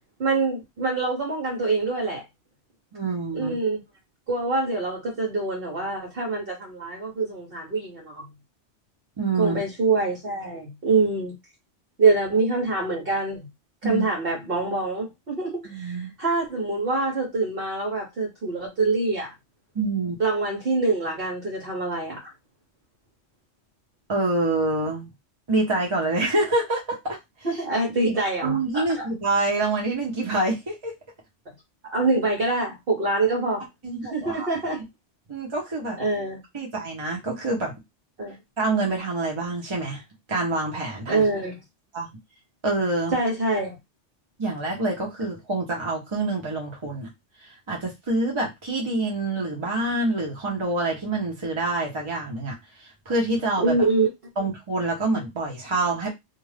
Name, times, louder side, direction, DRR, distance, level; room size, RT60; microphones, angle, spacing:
voice 1, 0.2-2.2 3.3-3.8 4.3-8.3 9.4-11.3 12.0-13.5 13.8-19.3 20.2-22.2 27.4-29.1 31.8-33.6 34.1-34.8 36.0-36.4 38.2-38.3 41.1-41.5 43.1-43.7 53.6-54.1, right 3 dB, 55° right, 1.0 m, -25 dB
voice 2, 2.9-3.6 9.2-9.6 13.8-14.1 15.6-16.1 19.7-20.2 24.1-25.1 25.5-27.2 28.0-30.9 33.8-34.5 35.3-36.0 36.5-37.7 38.6-40.0 40.3-41.2 41.9-42.1 42.6-43.2 44.4-47.1 47.4-53.8 54.4-56.1, right 2 dB, 30° right, 0.6 m, -26 dB
2.4 x 2.2 x 3.2 m
omnidirectional pair, 1.2 m